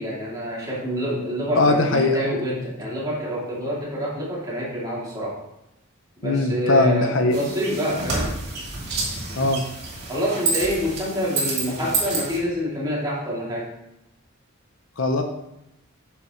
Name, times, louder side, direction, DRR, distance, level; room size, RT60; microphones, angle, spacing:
voice 1, 0.0-5.4 6.2-8.4 10.1-13.7, equal, 20° right, -7 dB, 2.9 m, -27 dB
voice 2, 1.5-2.2 6.2-7.4 9.4-9.6 15.0-15.2, left 3 dB, 70° left, 5 dB, 0.7 m, -20 dB
sound 1, 7.3-12.4, right 3 dB, 50° right, 2.7 m, -28 dB
9.2 x 6.6 x 3.2 m, 0.86 s
head